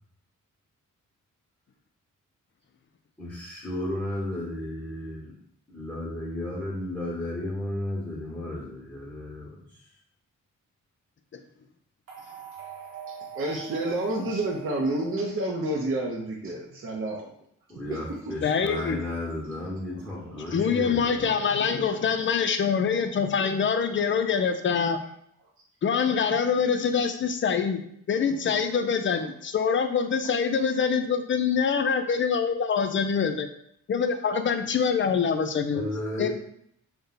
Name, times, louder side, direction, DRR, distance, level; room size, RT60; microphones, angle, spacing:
voice 1, 3.2-5.3 5.7-9.8 17.7-21.3 35.7-36.3, left 1 dB, 5° left, -6 dB, 1.0 m, -34 dB
sound 1, 12.1-16.3, right 7 dB, 85° right, 0.8 m, -43 dB
voice 2, 13.3-17.3 17.9-18.0 18.3-18.4 19.9-21.4 21.9-22.0 22.7-22.8, right 2 dB, 40° right, -2 dB, 0.6 m, -30 dB
voice 3, 18.4-19.0 20.5-25.0 25.8-27.8 28.1-33.5 33.9-35.8 36.2-36.3, left 6 dB, 40° left, 8 dB, 0.4 m, -25 dB
2.7 x 2.2 x 3.8 m, 0.70 s
cardioid pair, 60°, 33 cm